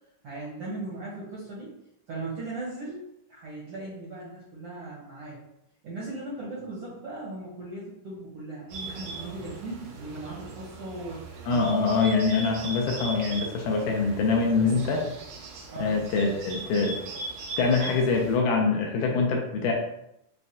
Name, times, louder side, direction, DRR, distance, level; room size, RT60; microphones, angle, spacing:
voice 1, 0.2-1.7 2.1-3.0 3.3-5.4 5.8-12.1 14.6-14.8 15.7-15.9, right 2 dB, 70° right, -7 dB, 1.4 m, -38 dB
Bird, 8.7-18.4, right 3 dB, 90° right, 2.4 m, -39 dB
voice 2, 11.5-15.0 15.8-16.9 17.6-19.7, left 4 dB, 80° left, 0 dB, 1.9 m, -24 dB
5.7 x 2.2 x 2.6 m, 0.80 s
omnidirectional pair, 3.7 m